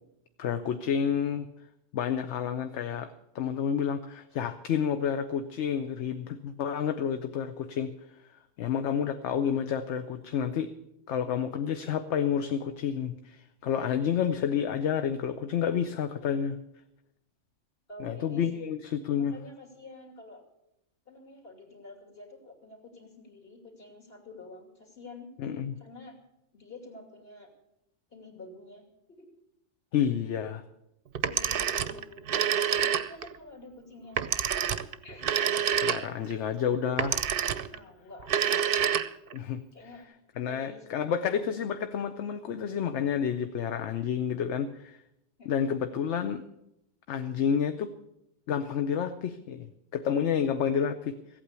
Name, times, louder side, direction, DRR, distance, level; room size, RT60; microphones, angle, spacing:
voice 1, 0.4-1.5 1.9-3.1 3.3-7.9 8.6-10.7 11.1-16.6 18.0-19.3 25.4-25.8 29.9-30.6 35.8-37.2 39.3-39.6 40.4-45.0 45.5-46.4 47.1-47.9 48.5-49.7 49.9-51.2, left 8 dB, 70° left, 9 dB, 1.0 m, -29 dB
voice 2, 8.8-9.1 17.9-18.6 19.1-20.4 21.1-25.3 25.8-26.1 26.5-27.5 28.1-28.8 29.1-29.3 31.2-34.2 35.0-36.2 37.7-38.4 39.7-40.0 40.5-40.9 45.4-45.7, left 2 dB, 50° left, -1 dB, 3.1 m, -49 dB
Telephone, 31.2-33.4 34.2-36.3 37.0-37.8 38.2-39.4, right 8 dB, 55° right, 0.7 m, -27 dB
15.5 x 8.8 x 8.2 m, 0.84 s
omnidirectional pair, 1.3 m